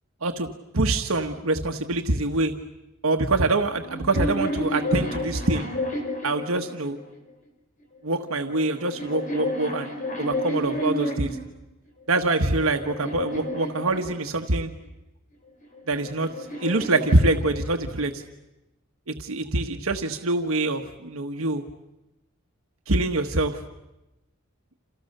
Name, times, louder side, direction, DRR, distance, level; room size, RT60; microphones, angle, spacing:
voice 1, 0.7-2.5 3.0-5.7 6.2-7.0 8.0-11.4 12.1-14.7 15.9-18.2 19.1-21.6 22.9-23.6, right 2 dB, 80° right, 5 dB, 1.4 m, -25 dB
sound 1, 3.8-7.2 8.1-11.5 12.1-14.6 15.6-18.0, left 1 dB, 35° left, 5.3 m, -31 dB
29.0 x 28.5 x 6.7 m, 0.98 s
head